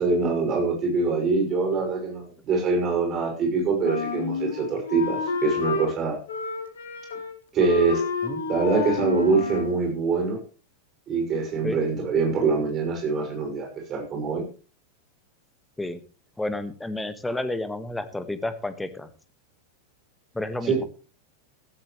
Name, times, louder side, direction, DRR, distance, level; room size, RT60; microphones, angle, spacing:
voice 1, 0.0-6.2 7.5-8.0 8.5-10.4 11.1-14.4 20.7-20.8, right 4 dB, 30° right, 3 dB, 6.2 m, -24 dB
Wind instrument woodwind instrument, 3.8-5.9 6.3-7.3 7.6-9.8, left 4 dB, 65° left, 2.3 m, -29 dB
voice 2, 16.4-19.1 20.3-20.8, left 2 dB, 5° left, 12 dB, 1.6 m, -31 dB
15.0 x 15.0 x 3.2 m, 0.35 s
figure-of-eight pair, 90°, 0 cm